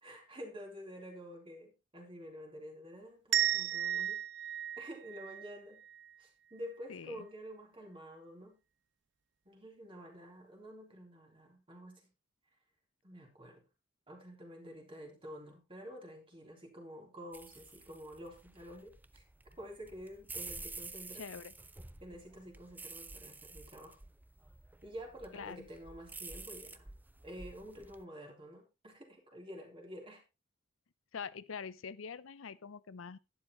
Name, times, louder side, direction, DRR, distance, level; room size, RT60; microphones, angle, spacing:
voice 1, 0.0-4.2 4.8-5.8 6.2-8.6 9.5-12.0 13.0-13.6 14.1-19.2 19.6-21.2 22.0-24.0 24.8-26.9 27.2-30.2, equal, 25° right, 3.6 m, -49 dB
sound 1, 3.3-6.1, right 11 dB, 60° right, 0.6 m, -34 dB
voice 2, 6.9-7.3 21.1-21.5 25.3-25.7 31.1-33.2, left 6 dB, 80° left, 0.6 m, -44 dB
sound 2, 17.3-28.0, right 3 dB, 10° right, 0.5 m, -50 dB
12.0 x 10.5 x 3.1 m
head